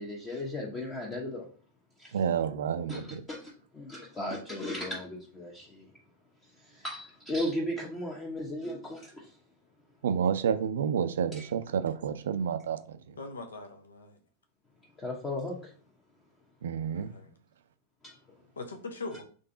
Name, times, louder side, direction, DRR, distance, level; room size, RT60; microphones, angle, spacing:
voice 1, 0.0-1.5 2.0-2.2 2.9-5.9 6.6-9.4 11.4-11.5 15.0-15.7 18.0-18.1, left 1 dB, 20° left, 1.0 m, -36 dB
voice 2, 2.1-3.2 10.0-13.0 16.6-17.1, right 7 dB, 65° right, 0.4 m, -29 dB
voice 3, 13.2-14.2 16.9-17.3 18.6-19.2, left 3 dB, 70° left, 0.8 m, -41 dB
3.9 x 3.3 x 3.9 m
figure-of-eight pair, 90°, 0 cm